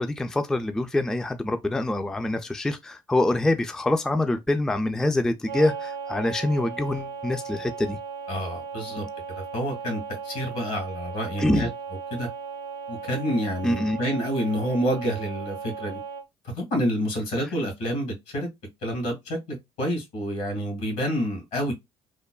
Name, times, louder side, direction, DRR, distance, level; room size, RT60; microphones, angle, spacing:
voice 1, 0.0-8.0 11.4-11.7 13.6-14.0, left 1 dB, 5° left, 0.3 m, -25 dB
sound 1, 5.5-16.2, right 6 dB, 80° right, 0.4 m, -36 dB
voice 2, 8.3-9.0 9.4-11.7 12.1-12.3 12.9-16.0 16.5-18.5 18.8-21.7, equal, 70° left, 1.6 m, -28 dB
3.1 x 2.0 x 2.2 m
hypercardioid pair, 60°, 13 cm